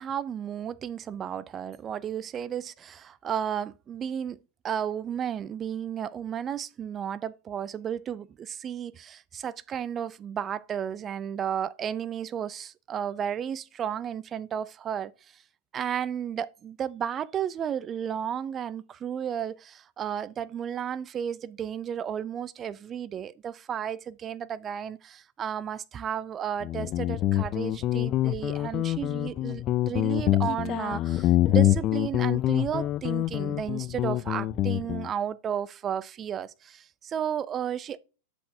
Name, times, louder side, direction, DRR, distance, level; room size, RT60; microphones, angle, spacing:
voice 1, 0.0-4.4 4.6-15.4 15.7-38.0, right 9 dB, 30° right, 0.4 m, -33 dB
Guitar, 26.6-35.1, left 14 dB, 40° left, 0.4 m, -26 dB
8.1 x 6.4 x 2.7 m
hypercardioid pair, 110°, 0 cm